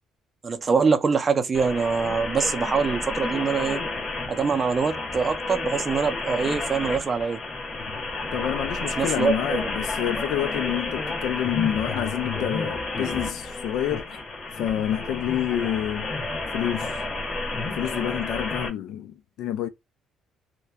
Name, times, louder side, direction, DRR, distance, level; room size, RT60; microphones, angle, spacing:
voice 1, 0.4-3.8 4.3-7.4 9.0-9.7, right 5 dB, 25° right, 0.4 m, -24 dB
sound 1, 1.5-18.7, left 3 dB, 40° left, 0.8 m, -31 dB
voice 2, 8.3-14.2 14.6-16.1 16.5-16.9 17.7-19.7, left 11 dB, 75° left, 0.4 m, -28 dB
2.8 x 2.1 x 2.2 m
cardioid pair, 155°, 0 cm